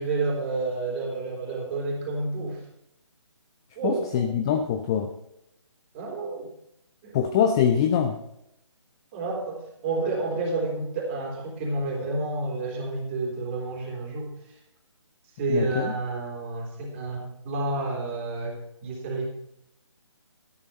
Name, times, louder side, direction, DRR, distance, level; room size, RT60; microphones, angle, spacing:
voice 1, 0.0-2.6 3.7-4.3 5.9-6.5 7.0-7.2 9.1-14.3 15.4-19.3, right 3 dB, 25° right, 0 dB, 3.5 m, -30 dB
voice 2, 3.8-5.1 7.1-8.2 15.5-15.9, left 8 dB, 10° left, 6 dB, 0.3 m, -23 dB
13.0 x 11.0 x 4.2 m, 0.81 s
figure-of-eight pair, 150°, 16 cm